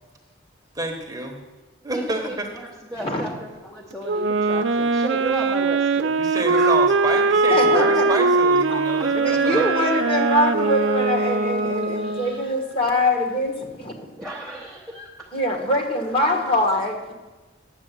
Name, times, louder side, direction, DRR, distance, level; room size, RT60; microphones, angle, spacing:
voice 1, 0.7-1.4 1.8-2.5 6.2-9.7, right 2 dB, 20° right, 2 dB, 1.1 m, -28 dB
voice 2, 1.9-6.2 6.5-7.0 8.7-9.4 14.2-15.3, right 2 dB, 5° left, -2 dB, 0.8 m, -34 dB
Wind instrument woodwind instrument, 4.1-12.4, right 3 dB, 70° right, 0.5 m, -21 dB
voice 3, 7.5-8.1 8.7-8.8 9.1-14.2 15.3-17.1, left 1 dB, 30° left, 2 dB, 1.6 m, -23 dB
Wind instrument woodwind instrument 2, 8.8-13.1, right 4 dB, 90° left, 2.7 m, -38 dB
9.1 x 7.3 x 7.5 m, 1.2 s
head